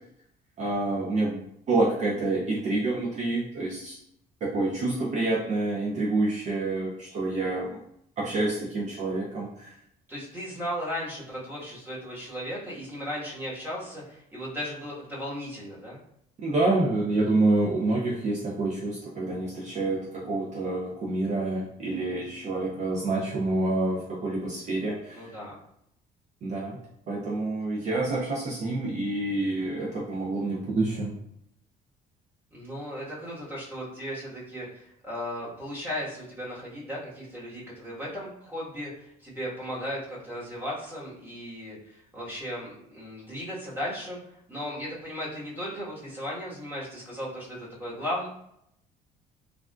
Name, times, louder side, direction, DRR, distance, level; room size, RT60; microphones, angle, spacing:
voice 1, 0.6-4.0 4.4-7.8 8.2-9.7 16.4-25.3 26.4-26.8 27.1-31.1, right 2 dB, 45° right, -4 dB, 0.6 m, -27 dB
voice 2, 10.1-16.0 25.1-25.6 32.5-44.2 44.5-48.3, equal, 15° right, -7 dB, 1.4 m, -36 dB
3.3 x 2.5 x 2.3 m, 0.74 s
cardioid pair, 110°, 17 cm